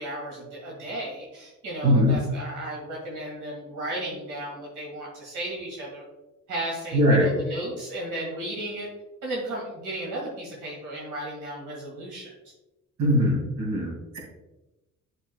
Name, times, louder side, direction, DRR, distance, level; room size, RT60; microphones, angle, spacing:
voice 1, 0.0-6.0 6.5-8.9 9.2-12.3, right 1 dB, 80° right, -3 dB, 2.0 m, -34 dB
voice 2, 1.8-2.2 6.9-7.3 13.0-14.2, equal, 65° right, 0 dB, 2.4 m, -21 dB
8.1 x 6.2 x 2.3 m, 1.0 s
cardioid pair, 90°, 30 cm